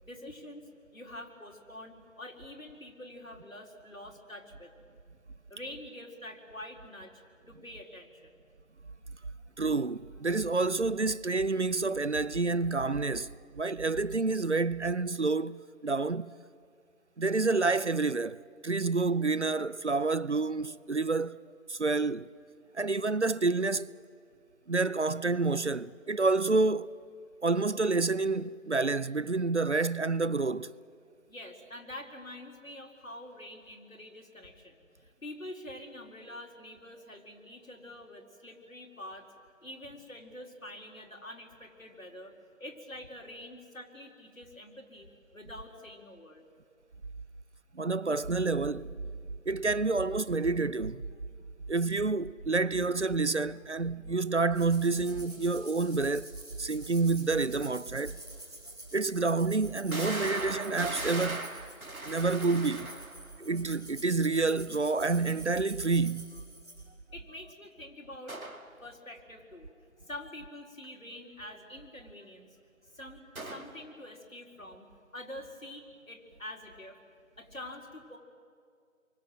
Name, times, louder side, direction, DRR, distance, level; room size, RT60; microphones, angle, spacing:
voice 1, 0.0-4.7 5.5-7.2 7.5-8.3 31.3-39.3 39.6-46.4 67.1-68.4 68.8-69.7 70.0-72.6 72.9-74.9 75.1-77.0 77.4-78.2, left 1 dB, 70° left, 4.2 m, -46 dB
voice 2, 9.6-16.3 17.2-21.4 21.7-22.3 22.7-23.9 24.7-26.9 27.4-30.7 47.7-49.0 49.5-51.0 51.7-58.2 58.9-61.5 62.0-62.9 63.4-66.4, right 3 dB, 55° right, 0.6 m, -28 dB
sound 1, 54.5-66.8, right 1 dB, 30° right, 7.9 m, -48 dB
sound 2, 58.3-58.4 59.0-59.1 59.9-63.3 68.3-68.7 73.3-73.8, right 2 dB, 85° right, 2.3 m, -38 dB
28.0 x 24.0 x 7.8 m
figure-of-eight pair, 175°, 41 cm